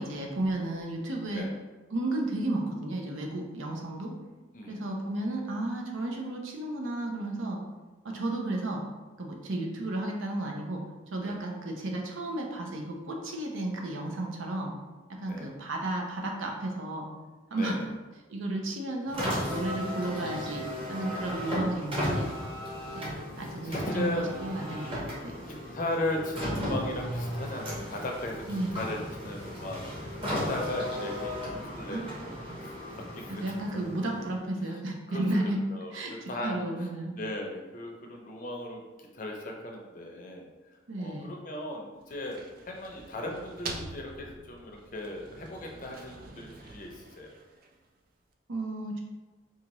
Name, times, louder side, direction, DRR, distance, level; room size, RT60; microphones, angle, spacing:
voice 1, 0.0-1.5 1.9-4.1 4.7-7.6 8.0-8.8 9.2-10.8 11.1-14.7 15.2-17.1 17.5-17.8 18.3-19.2 19.5-22.3 22.9-25.4 28.5-28.9 30.3-30.7 31.9-32.0 33.3-35.6 35.9-37.1 40.9-41.3 48.5-49.0, right 1 dB, 85° right, 1 dB, 0.7 m, -33 dB
voice 2, 4.5-4.9 11.2-11.4 15.2-15.5 17.5-17.9 23.3-24.3 25.5-32.2 32.6-33.4 33.7-33.9 35.1-35.4 35.7-36.0 36.3-36.9 37.1-38.8 39.1-40.5 41.0-42.4 42.7-47.3, left 1 dB, 45° left, 0 dB, 0.5 m, -37 dB
Car, 19.1-34.5, equal, 30° right, 0.9 m, -35 dB
sound 1, 42.0-48.0, right 3 dB, 45° right, 0.3 m, -45 dB
4.2 x 2.4 x 3.0 m, 1.2 s
head